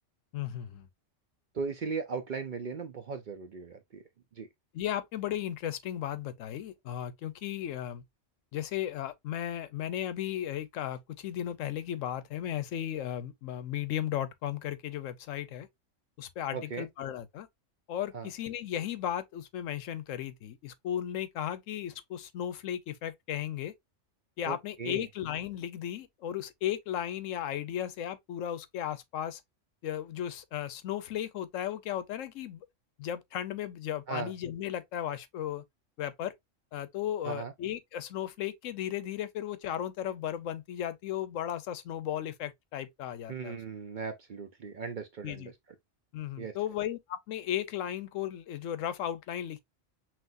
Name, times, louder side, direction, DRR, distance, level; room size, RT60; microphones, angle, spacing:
voice 1, 0.3-0.9 4.7-8.0 8.5-15.7 16.2-17.5 17.9-23.7 24.4-29.4 29.8-32.7 33.0-35.6 36.0-36.3 36.7-43.6 45.2-45.5 46.1-49.6, left 11 dB, 90° left, 1.0 m, -35 dB
voice 2, 1.5-4.0 4.4-4.5 16.5-16.9 18.1-18.3 24.4-25.0 34.1-34.3 37.2-37.5 43.3-45.5 46.4-46.5, right 5 dB, 55° right, 0.5 m, -37 dB
5.8 x 2.5 x 2.5 m
omnidirectional pair, 1.3 m